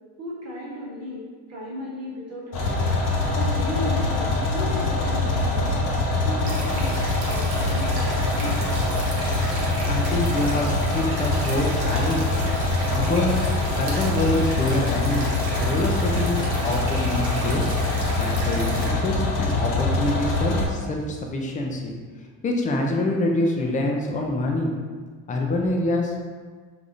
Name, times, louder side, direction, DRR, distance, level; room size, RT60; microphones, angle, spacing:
voice 1, 0.2-2.9 3.3-5.8 6.2-8.1 8.3-8.7, equal, 30° right, -6 dB, 1.3 m, -35 dB
sound 1, 2.5-20.7, left 2 dB, 50° left, 0.9 m, -24 dB
sound 2, 6.4-18.9, right 1 dB, 65° right, 0.9 m, -35 dB
voice 2, 9.9-12.3 12.9-13.4 13.8-15.3 15.6-17.7 18.2-21.9 22.4-24.7 25.3-26.3, left 2 dB, 20° left, 1 dB, 0.3 m, -26 dB
3.3 x 2.6 x 2.4 m, 1.5 s
supercardioid pair, 85°, 48 cm